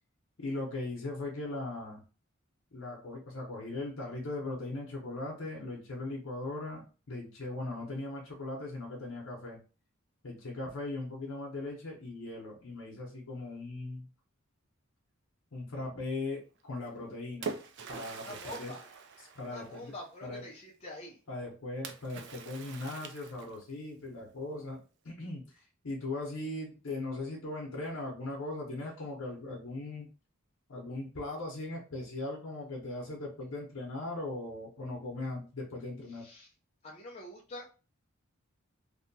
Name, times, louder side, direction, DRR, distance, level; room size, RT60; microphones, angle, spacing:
voice 1, 0.4-2.0 2.7-9.6 10.2-14.1 15.5-17.6 17.9-18.7 19.3-19.9 20.2-20.4 21.3-25.6 25.8-30.1 30.7-36.3, left 2 dB, 75° left, -2 dB, 0.8 m, -39 dB
Splash splatter, 16.9-20.0 21.8-23.8, right 5 dB, 60° right, 0.4 m, -44 dB
voice 2, 18.2-18.8 19.5-21.2 36.1-36.5 36.8-37.9, left 1 dB, 30° left, -2 dB, 0.4 m, -45 dB
2.7 x 2.2 x 2.6 m, 0.35 s
head